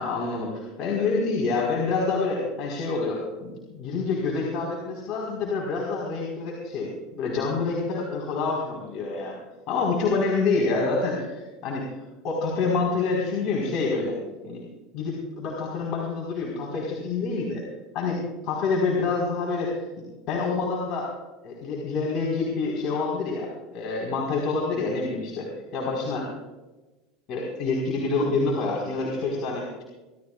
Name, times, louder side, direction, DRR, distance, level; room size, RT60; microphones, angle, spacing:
voice 1, 0.0-9.4 9.7-11.8 12.2-14.2 14.4-14.7 14.9-17.6 17.9-18.2 18.5-19.8 20.3-21.1 21.4-26.3 27.3-29.8, left 4 dB, 55° left, -1 dB, 4.5 m, -27 dB
27.0 x 14.0 x 2.5 m, 1.1 s
supercardioid pair, 110°, 0 cm